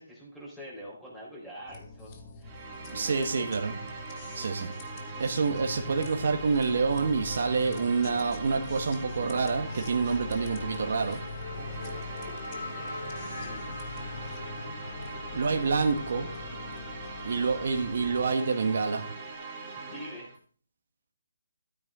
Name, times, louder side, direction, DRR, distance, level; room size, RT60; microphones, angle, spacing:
voice 1, 0.0-3.3 11.5-13.9 15.5-15.8 19.9-20.3, equal, 5° left, -6 dB, 4.4 m, -46 dB
sound 1, 1.7-18.2, left 3 dB, 30° left, 1.9 m, -43 dB
sound 2, 2.4-20.4, right 4 dB, 20° right, 3.6 m, -42 dB
voice 2, 2.9-3.8 4.3-4.7 5.2-11.2 15.3-16.3 17.2-19.1, right 4 dB, 60° right, 3 dB, 1.7 m, -27 dB
Race car auto racing / Accelerating revving vroom, 4.3-5.4 5.7-19.4, left 4 dB, 70° left, 3.3 m, -45 dB
13.0 x 8.6 x 3.8 m, 0.43 s
hypercardioid pair, 160°, 0 cm